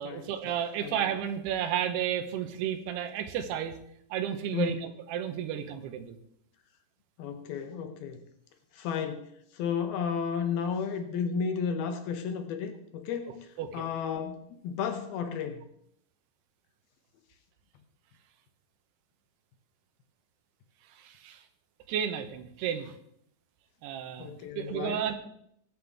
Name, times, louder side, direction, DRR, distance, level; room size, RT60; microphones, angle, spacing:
voice 1, 0.0-3.8 4.1-6.2 13.6-13.8 20.9-21.4 21.9-22.9 23.8-24.3 24.6-25.1, right 9 dB, 80° right, 7 dB, 3.0 m, -32 dB
voice 2, 7.2-8.2 8.7-15.6 24.2-25.0, left 6 dB, 75° left, 6 dB, 2.7 m, -33 dB
22.5 x 8.0 x 3.5 m, 0.72 s
omnidirectional pair, 4.8 m